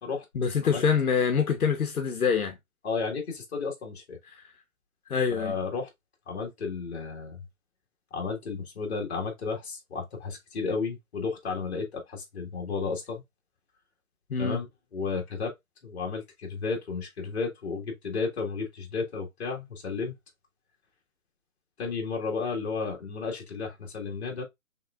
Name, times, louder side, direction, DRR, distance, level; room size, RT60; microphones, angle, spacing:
voice 1, 0.3-2.6 4.3-4.4 5.1-5.5 14.3-14.6, left 6 dB, 80° left, 1.1 m, -25 dB
voice 2, 2.8-4.2 5.3-5.9 6.3-7.4 8.1-13.2 14.4-14.7 14.9-15.5 15.8-20.1 21.8-24.4, left 4 dB, 45° left, 1.7 m, -33 dB
5.6 x 3.3 x 2.4 m
hypercardioid pair, 155°, 43 cm